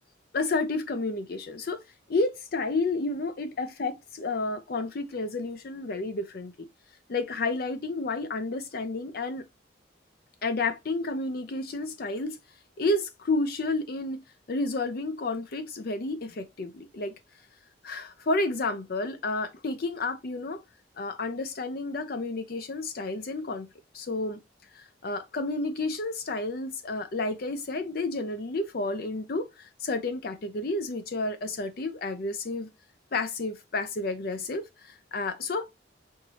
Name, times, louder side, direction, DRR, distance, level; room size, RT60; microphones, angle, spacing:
voice 1, 0.3-1.8 2.1-6.7 7.1-9.4 10.4-12.4 12.8-14.2 14.5-17.1 17.8-20.6 21.0-23.7 23.9-24.4 24.7-32.7 33.1-35.7, left 2 dB, 55° left, 0.5 m, -31 dB
6.4 x 3.0 x 2.8 m
head